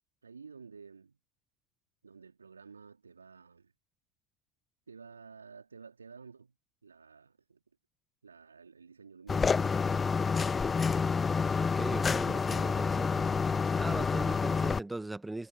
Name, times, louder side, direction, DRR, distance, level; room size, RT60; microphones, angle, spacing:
voice 1, 0.2-1.2 2.0-3.7 4.9-6.5 6.8-7.6 8.2-9.8 12.2-13.0, right 5 dB, 85° right, 2.8 m, -52 dB
sound 1, 9.3-14.8, left 5 dB, 25° left, 0.4 m, -28 dB
voice 2, 11.6-13.2 13.8-15.5, right 2 dB, 10° right, 1.5 m, -39 dB
figure-of-eight pair, 70°, 0 cm